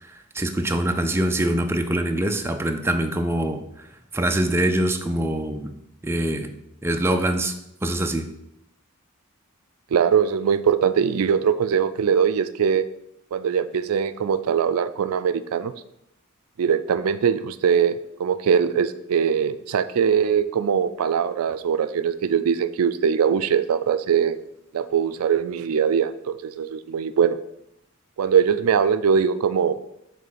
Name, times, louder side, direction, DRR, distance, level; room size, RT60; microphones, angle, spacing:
voice 1, 0.3-3.9 4.1-5.7 6.0-6.5 6.8-7.5 7.8-8.3, right 1 dB, 10° right, 5 dB, 0.4 m, -24 dB
voice 2, 9.9-12.9 13.3-15.7 16.6-24.4 24.7-27.4 28.2-29.8, right 7 dB, 85° right, 13 dB, 0.4 m, -21 dB
7.3 x 3.2 x 5.8 m, 0.81 s
head